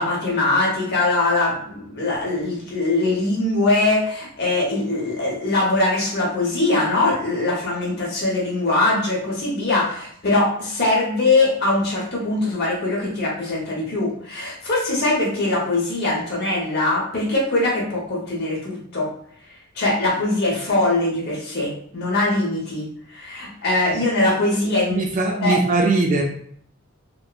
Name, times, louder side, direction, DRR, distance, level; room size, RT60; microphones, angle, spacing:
voice 1, 0.0-19.1 19.7-25.0 25.4-25.6, left 2 dB, 45° left, -4 dB, 0.9 m, -22 dB
voice 2, 24.9-26.2, right 3 dB, 35° right, 1 dB, 0.3 m, -20 dB
3.0 x 2.1 x 2.3 m, 0.63 s
head